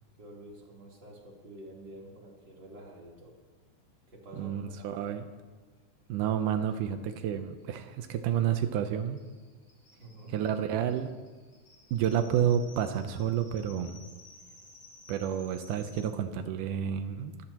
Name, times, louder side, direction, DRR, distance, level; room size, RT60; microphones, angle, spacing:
voice 1, 0.2-3.3 4.1-5.1 10.0-10.5, right 1 dB, 35° right, -3 dB, 3.9 m, -49 dB
voice 2, 4.4-5.2 6.1-9.2 10.3-11.1 11.9-14.0 15.1-17.5, right 9 dB, 90° right, 8 dB, 2.3 m, -30 dB
sound 1, 6.4-6.5 6.7-6.8 7.1-16.0, left 3 dB, 80° left, 5.6 m, -56 dB
25.0 x 15.0 x 3.0 m, 1.3 s
omnidirectional pair, 3.6 m